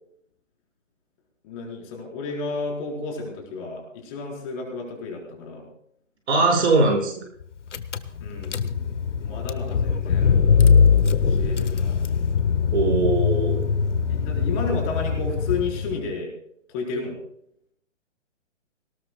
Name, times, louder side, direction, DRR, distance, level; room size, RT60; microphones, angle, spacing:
voice 1, 1.4-5.7 8.2-8.9 9.2-10.4 11.2-12.1 14.1-16.3 16.7-17.2, left 3 dB, 30° left, 0 dB, 4.5 m, -32 dB
voice 2, 6.3-7.1 12.7-13.7, right 3 dB, 60° right, 0 dB, 5.9 m, -20 dB
Car / Engine, 7.4-7.5 7.7-16.1, left 6 dB, 70° left, 1.1 m, -21 dB
21.0 x 19.0 x 2.3 m, 0.70 s
hypercardioid pair, 145°, 38 cm